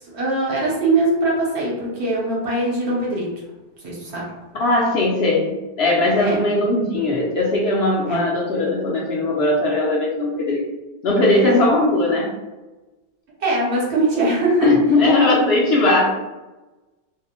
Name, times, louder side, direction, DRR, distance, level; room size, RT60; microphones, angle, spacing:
voice 1, 0.0-3.3 3.8-4.2 6.2-6.3 8.1-8.2 11.4-11.6 13.4-14.7 15.4-15.5, right 2 dB, 60° right, -5 dB, 1.0 m, -21 dB
voice 2, 4.6-10.7 11.0-12.3 14.6-16.2, left 2 dB, 65° left, -4 dB, 0.7 m, -19 dB
2.6 x 2.0 x 2.8 m, 1.1 s
omnidirectional pair, 1.3 m